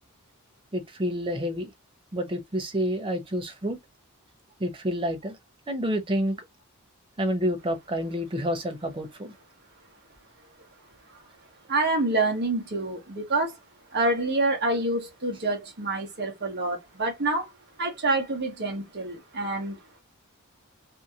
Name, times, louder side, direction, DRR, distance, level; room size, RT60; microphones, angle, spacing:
voice 1, 0.7-1.7 2.1-3.8 4.6-5.4 5.7-6.4 7.2-9.3, equal, 25° right, 0.6 m, -28 dB
voice 2, 11.7-13.6 13.9-17.5 17.8-19.8, right 2 dB, 50° right, 1.0 m, -27 dB
2.7 x 2.7 x 2.3 m
head